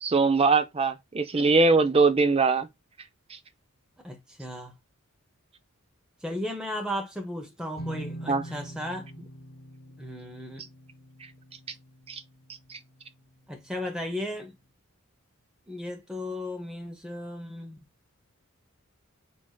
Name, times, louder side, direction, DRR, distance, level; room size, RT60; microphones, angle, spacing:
voice 1, 0.0-2.7 3.3-3.4 8.3-8.4 12.1-12.2 12.7-12.8, right 3 dB, 25° right, 0.6 m, -22 dB
voice 2, 4.0-4.7 6.2-9.1 10.0-10.7 13.5-14.6 15.7-17.8, left 1 dB, 5° right, 0.9 m, -35 dB
sound 1, 7.8-13.4, right 1 dB, 45° left, 1.0 m, -43 dB
7.4 x 2.8 x 2.3 m
head